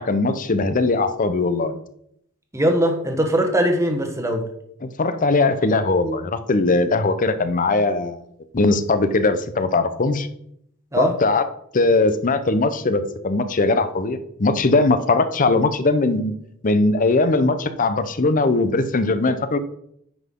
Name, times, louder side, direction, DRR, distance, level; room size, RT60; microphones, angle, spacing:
voice 1, 0.0-1.8 4.8-8.2 8.5-10.3 11.0-11.4 11.7-16.4 16.6-19.6, left 3 dB, 40° left, 11 dB, 0.7 m, -20 dB
voice 2, 2.5-4.4 10.9-11.1, right 1 dB, 15° right, 4 dB, 1.1 m, -20 dB
9.8 x 5.6 x 3.7 m, 0.71 s
head